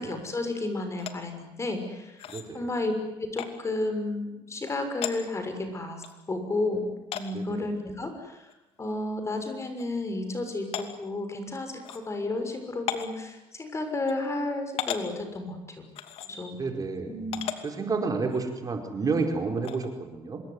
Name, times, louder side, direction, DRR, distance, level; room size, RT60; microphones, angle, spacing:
voice 1, 0.0-2.2 2.5-2.9 3.2-6.8 7.1-8.5 8.8-15.8 16.2-16.5 17.1-17.4, left 2 dB, 25° left, 7 dB, 6.3 m, -32 dB
sound 1, 1.0-1.1 2.2-2.5 3.4-3.5 4.7-4.8 5.0-5.2 6.0-6.1 7.1-7.3 8.5-8.6 9.0-9.1 9.8-9.9 10.7-10.9 11.8-12.0 12.9-13.1 14.1-14.2 14.8-15.0 15.9-16.3 17.3-17.6 18.3-18.4 19.6-19.9, left 10 dB, 70° left, 2.7 m, -34 dB
voice 2, 2.3-2.7 7.3-7.7 16.6-17.1 17.6-20.4, right 4 dB, 35° right, 4 dB, 4.7 m, -30 dB
26.5 x 21.5 x 9.9 m, 0.97 s
cardioid pair, 100°, 10 cm